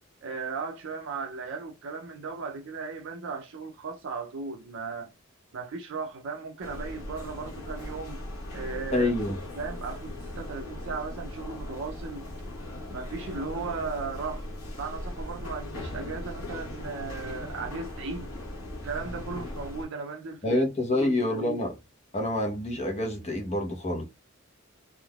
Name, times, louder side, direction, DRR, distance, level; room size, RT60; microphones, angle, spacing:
voice 1, 0.2-5.1 5.5-8.2 8.5-9.1 9.6-12.2 12.9-14.5 14.8-18.3 18.8-20.7 21.0-21.6, right 4 dB, 65° right, 0.5 m, -36 dB
sound 1, 6.6-19.9, left 1 dB, 75° left, 1.1 m, -38 dB
voice 2, 8.9-9.4 20.4-21.7 22.1-24.0, left 2 dB, 30° left, 0.9 m, -27 dB
3.6 x 2.5 x 2.3 m
head